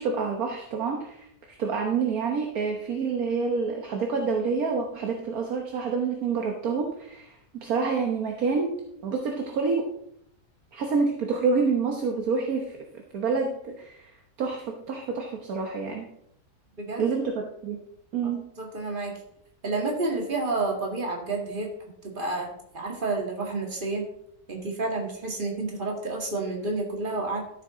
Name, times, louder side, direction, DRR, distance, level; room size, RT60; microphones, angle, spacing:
voice 1, 0.0-8.8 9.0-9.9 10.7-12.8 13.1-14.1 14.4-16.1 17.0-17.8 18.1-18.5, right 5 dB, 70° right, 2 dB, 1.6 m, -28 dB
voice 2, 16.8-17.1 18.2-19.1 19.6-21.7 22.0-22.5 22.7-24.0 24.5-27.6, right 3 dB, 35° right, 1 dB, 2.2 m, -30 dB
13.0 x 7.3 x 3.9 m, 0.73 s
omnidirectional pair, 1.6 m